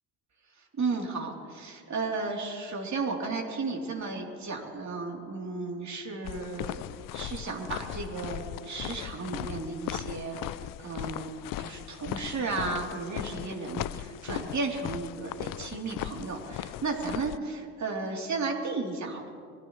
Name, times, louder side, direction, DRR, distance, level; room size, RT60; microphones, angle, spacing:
voice 1, 0.5-6.8 7.1-11.3 11.6-19.3, right 3 dB, 35° right, -1 dB, 3.5 m, -34 dB
sound 1, 6.2-17.4, left 14 dB, 45° left, 0.6 m, -38 dB
25.0 x 14.5 x 3.2 m, 2.2 s
hypercardioid pair, 60°, 46 cm